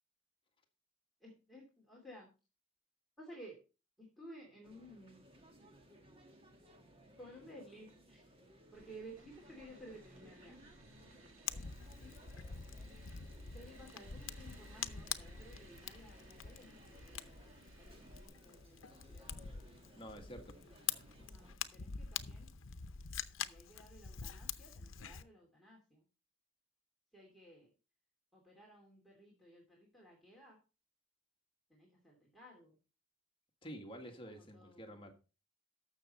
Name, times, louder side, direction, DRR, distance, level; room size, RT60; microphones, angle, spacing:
voice 1, 1.2-2.3 3.2-3.6 4.0-5.2 7.2-8.4 8.7-10.6 12.0-12.2 12.9-13.0 13.5-19.5 20.1-22.5 23.4-26.0 27.1-27.7 28.3-30.6 31.7-32.8 34.2-35.1, right 1 dB, ahead, 2.7 m, -56 dB
sound 1, 4.6-21.6, right 1 dB, 30° right, 1.7 m, -61 dB
sound 2, 8.7-18.3, right 2 dB, 85° right, 2.2 m, -62 dB
Fire, 11.5-25.2, left 8 dB, 80° left, 0.8 m, -45 dB
voice 2, 19.9-20.6 21.2-21.3 33.6-35.1, equal, 25° left, 1.7 m, -49 dB
13.5 x 6.5 x 4.2 m
head